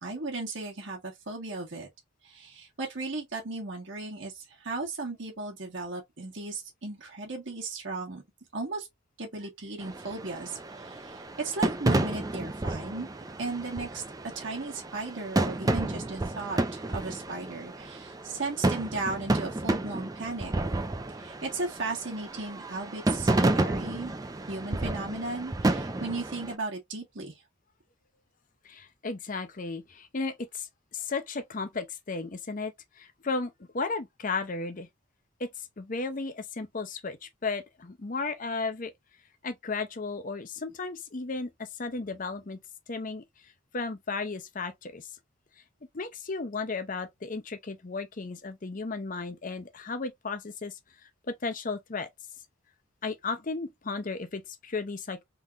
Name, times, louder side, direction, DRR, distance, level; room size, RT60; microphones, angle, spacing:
voice 1, 0.0-1.9 2.2-8.2 8.5-8.9 9.2-13.1 13.4-14.0 14.3-20.5 21.2-24.1 24.5-27.4, right 3 dB, 60° right, 1.5 m, -36 dB
sound 1, 9.8-26.5, right 2 dB, 15° right, 0.4 m, -31 dB
voice 2, 28.6-34.9 35.4-38.9 39.4-42.6 42.9-43.2 43.7-45.1 45.9-50.8 51.3-52.1 53.0-55.2, left 4 dB, 40° left, 0.6 m, -34 dB
3.8 x 2.9 x 2.4 m
head